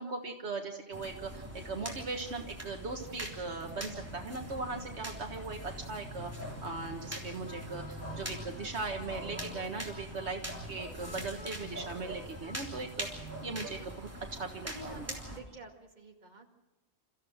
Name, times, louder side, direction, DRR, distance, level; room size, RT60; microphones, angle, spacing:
voice 1, 0.0-6.3 6.6-10.4 10.7-13.1 13.4-15.1, right 3 dB, 70° right, 4 dB, 1.7 m, -39 dB
sound 1, 0.9-15.4, equal, 10° right, 3.4 m, -42 dB
sound 2, 7.5-12.5, left 2 dB, 40° left, 1.5 m, -54 dB
voice 2, 14.6-16.5, right 3 dB, 40° right, 2 dB, 2.2 m, -50 dB
29.0 x 14.5 x 6.4 m, 0.99 s
omnidirectional pair, 1.2 m